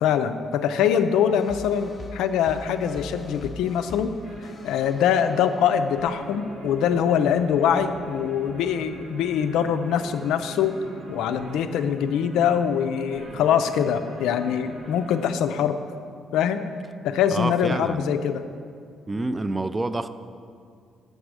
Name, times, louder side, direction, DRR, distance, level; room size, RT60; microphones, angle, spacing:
voice 1, 0.0-4.1 4.6-10.8 11.1-15.8 16.3-16.6 17.0-18.4, left 8 dB, 80° left, 9 dB, 0.3 m, -23 dB
sound 1, 1.3-9.5, left 3 dB, 35° left, 0.8 m, -44 dB
sound 2, 4.2-15.3, right 1 dB, 60° right, 1.6 m, -42 dB
voice 2, 17.3-18.0 19.1-20.1, right 2 dB, 25° right, 12 dB, 0.3 m, -27 dB
6.5 x 5.0 x 4.8 m, 2.3 s
supercardioid pair, 60°, 0 cm